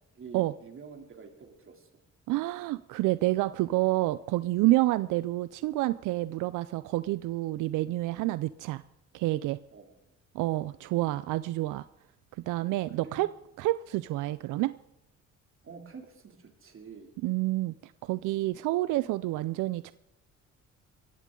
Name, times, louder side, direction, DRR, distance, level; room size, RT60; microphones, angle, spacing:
voice 1, 0.1-1.9 9.7-9.9 12.9-13.2 15.6-17.1 18.5-18.7, right 5 dB, 45° right, 3 dB, 2.8 m, -48 dB
voice 2, 2.3-8.8 9.1-9.6 10.3-11.9 12.5-13.3 13.6-14.7 17.2-19.9, right 17 dB, 90° right, 16 dB, 0.5 m, -28 dB
19.0 x 14.5 x 3.8 m, 0.83 s
cardioid pair, 90°, 30 cm